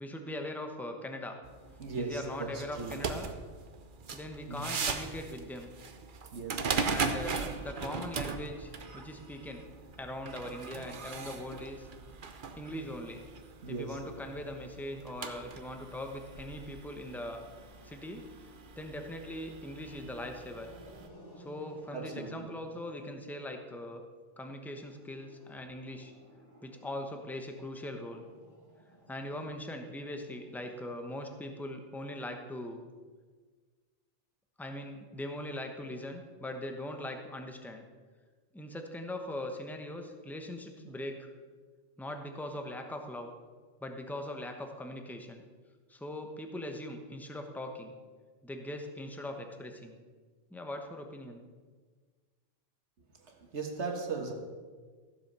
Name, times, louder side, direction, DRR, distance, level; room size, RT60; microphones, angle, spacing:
voice 1, 0.0-1.4 2.0-3.3 4.1-5.7 6.9-9.6 10.0-11.9 12.6-13.2 13.7-17.4 17.8-18.3 18.8-20.7 21.4-24.0 24.4-26.1 26.6-28.3 29.1-32.8 34.6-37.8 38.5-41.3 42.0-43.3 43.8-45.4 45.9-47.9 48.4-49.9 50.5-51.4, left 1 dB, ahead, 4 dB, 0.9 m, -41 dB
sound 1, 1.4-21.1, right 5 dB, 50° right, 0.9 m, -40 dB
voice 2, 1.8-3.1 4.5-4.7 6.3-6.9 13.6-14.1 21.9-22.5 25.5-25.6 53.2-54.3, right 4 dB, 70° right, 3 dB, 1.6 m, -38 dB
Growling, 17.3-19.0 19.6-23.7 24.7-31.2, equal, 30° left, 3.1 m, -58 dB
15.0 x 7.4 x 5.5 m, 1.5 s
omnidirectional pair, 1.2 m